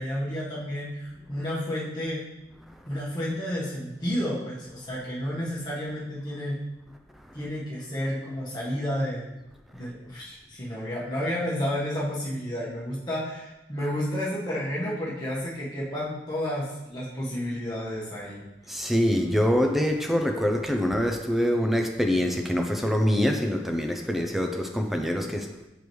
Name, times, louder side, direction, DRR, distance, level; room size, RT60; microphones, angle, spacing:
voice 1, 0.0-2.2 2.9-6.6 7.3-9.2 9.7-18.4, equal, 25° left, -7 dB, 1.3 m, -31 dB
voice 2, 18.7-25.5, equal, ahead, 3 dB, 0.5 m, -25 dB
6.8 x 4.8 x 3.1 m, 0.98 s
head